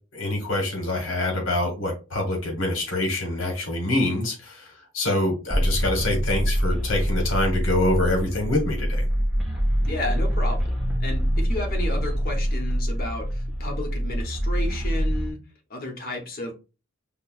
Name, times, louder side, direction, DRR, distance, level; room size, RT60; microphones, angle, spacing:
voice 1, 0.1-4.7 4.9-9.1, left 1 dB, 65° left, 1.3 m, -25 dB
sound 1, 5.5-15.3, equal, ahead, 0.6 m, -25 dB
voice 2, 9.9-10.7 11.0-15.4 15.7-16.5, left 1 dB, 45° left, 0.9 m, -32 dB
5.3 x 2.0 x 2.3 m
head